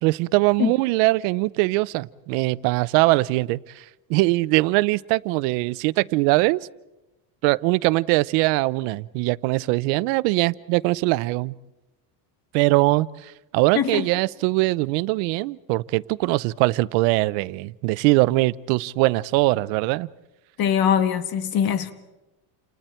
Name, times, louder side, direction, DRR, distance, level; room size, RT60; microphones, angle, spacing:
voice 1, 0.0-6.7 7.4-11.5 12.5-20.1, right 21 dB, 85° right, 0.8 m, -22 dB
voice 2, 13.7-14.0 20.6-21.9, left 9 dB, 45° left, 1.4 m, -22 dB
29.5 x 29.0 x 4.4 m
cardioid pair, 140°, 48 cm